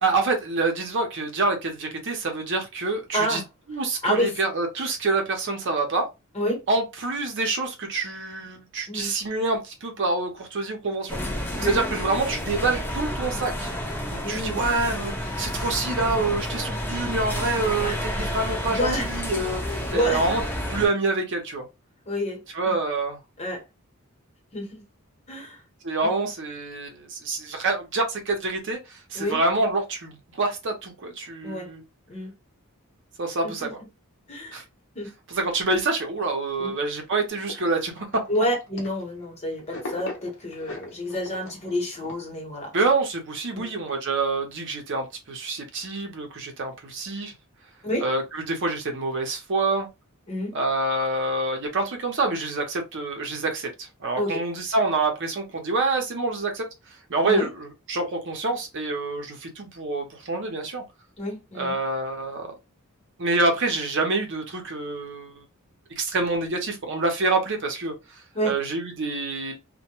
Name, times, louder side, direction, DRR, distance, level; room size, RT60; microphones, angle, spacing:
voice 1, 0.0-3.4 3.7-6.1 6.7-11.2 11.5-13.7 14.3-19.6 19.9-20.4 20.7-21.7 22.5-23.2 25.8-31.8 33.2-33.8 34.5-34.6 35.3-38.1 42.7-47.3 48.0-49.9 50.5-56.7 57.1-60.8 61.5-62.6 63.2-65.4 66.0-69.6, right 3 dB, 60° right, 0.7 m, -26 dB
voice 2, 3.1-3.4 4.0-4.3 6.3-6.6 8.9-9.1 11.6-11.8 14.2-14.7 17.7-18.0 18.7-19.1 19.9-20.3 22.1-22.8 23.4-23.6 24.5-24.8 25.3-25.6 26.0-26.1 29.1-29.4 31.4-31.7 32.1-32.3 33.4-33.7 34.3-34.6 34.9-35.1 36.6-36.7 38.3-42.7 43.5-43.7 47.8-48.0 50.3-50.5 54.2-54.4 57.2-57.5 61.2-61.7 68.3-68.6, equal, 30° left, 1.0 m, -29 dB
sound 1, 11.1-20.9, equal, 10° left, 0.6 m, -30 dB
sound 2, 37.3-39.3 39.6-42.2, left 2 dB, 65° left, 0.8 m, -39 dB
2.2 x 2.1 x 2.9 m
head